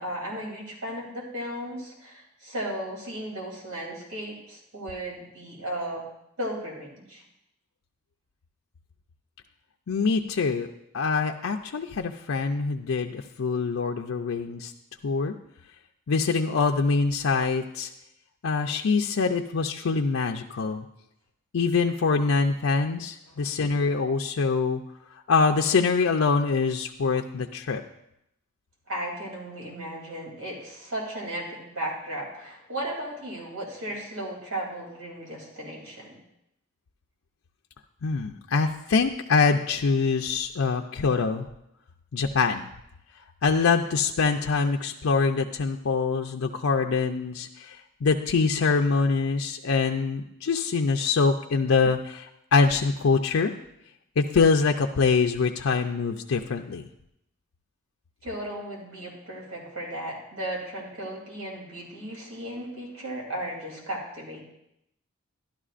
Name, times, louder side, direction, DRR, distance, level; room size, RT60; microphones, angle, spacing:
voice 1, 0.0-6.0 6.4-7.2 23.3-23.6 28.9-36.2 58.2-64.4, right 1 dB, 90° right, -2 dB, 2.8 m, -35 dB
voice 2, 9.9-10.7 10.9-14.7 15.0-15.3 16.1-17.9 18.4-20.8 21.5-24.8 25.3-27.8 38.0-41.5 42.1-42.7 43.4-53.5 54.2-56.8, left 4 dB, 80° left, 3 dB, 0.5 m, -24 dB
12.5 x 11.5 x 2.5 m, 0.80 s
head